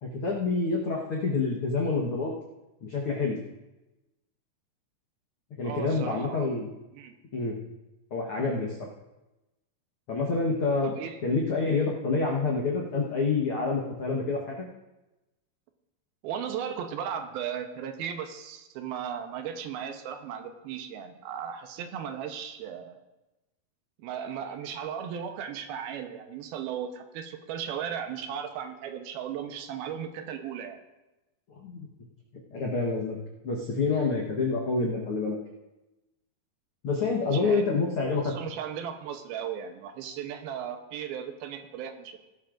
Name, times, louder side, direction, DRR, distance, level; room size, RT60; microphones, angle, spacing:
voice 1, 0.0-2.3 2.8-3.4 5.6-6.7 7.3-7.6 8.1-8.7 10.1-10.9 11.2-14.5 31.6-31.8 32.5-33.2 33.4-35.4 36.8-38.3, left 3 dB, 80° left, -2 dB, 1.2 m, -27 dB
voice 2, 5.6-6.6 6.9-7.1 10.8-11.2 16.2-23.0 24.0-30.8 37.2-37.7 38.2-42.2, right 8 dB, 80° right, 6 dB, 2.7 m, -36 dB
18.5 x 11.5 x 2.5 m, 1.0 s
omnidirectional pair, 4.5 m